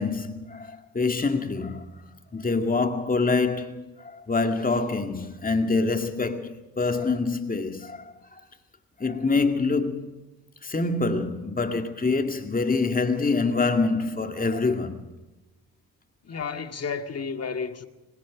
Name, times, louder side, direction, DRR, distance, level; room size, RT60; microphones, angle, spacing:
voice 1, 0.0-2.1 2.3-8.4 9.0-10.2 10.6-15.0, left 3 dB, 20° left, 2.2 m, -26 dB
voice 2, 16.2-17.9, left 5 dB, 40° left, 2.1 m, -32 dB
25.0 x 20.5 x 5.1 m
supercardioid pair, 60°, 40 cm